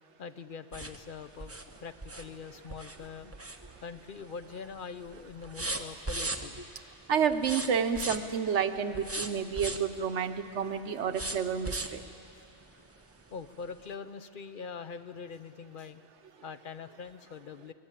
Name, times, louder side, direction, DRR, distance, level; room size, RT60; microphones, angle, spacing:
voice 1, 0.2-3.3 3.8-6.6 13.3-16.0 16.4-17.7, left 5 dB, 55° left, 11 dB, 0.9 m, -43 dB
sound 1, 0.7-4.1 4.4-4.8 5.1-6.7 7.3-8.4 8.9-9.9 11.1-12.1 12.6-12.7 13.1-13.2, right 2 dB, 15° right, 0.8 m, -37 dB
voice 2, 7.1-12.0, right 7 dB, 80° right, 9 dB, 1.1 m, -30 dB
23.0 x 19.0 x 9.0 m, 2.8 s
omnidirectional pair, 1.2 m